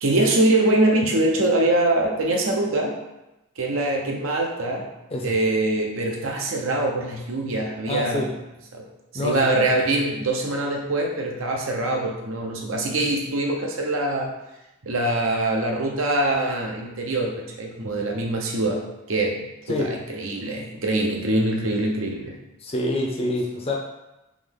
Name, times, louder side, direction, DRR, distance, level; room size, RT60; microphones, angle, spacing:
voice 1, 0.0-2.9 3.6-4.9 5.2-8.3 8.7-8.9 9.1-14.3 14.8-18.8 19.1-19.4 19.7-22.4, right 2 dB, 80° right, 0 dB, 0.8 m, -23 dB
voice 2, 7.9-8.3 9.1-9.4 19.7-19.9 22.6-23.7, left 1 dB, 30° left, -1 dB, 0.5 m, -26 dB
3.7 x 3.0 x 3.7 m, 0.96 s
head